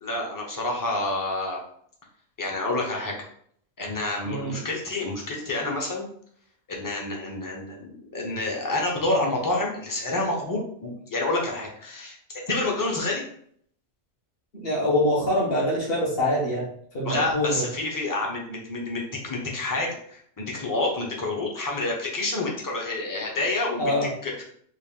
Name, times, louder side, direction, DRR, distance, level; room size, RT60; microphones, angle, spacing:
voice 1, 0.0-1.6 2.4-3.1 3.8-6.0 6.7-12.2 12.5-13.2 17.0-24.0 24.2-24.4, left 2 dB, 20° left, -1 dB, 0.7 m, -28 dB
voice 2, 4.3-4.6 14.5-16.7 16.9-17.7 23.8-24.1, left 1 dB, 55° left, -4 dB, 1.5 m, -24 dB
3.6 x 2.5 x 3.6 m, 0.64 s
omnidirectional pair, 1.2 m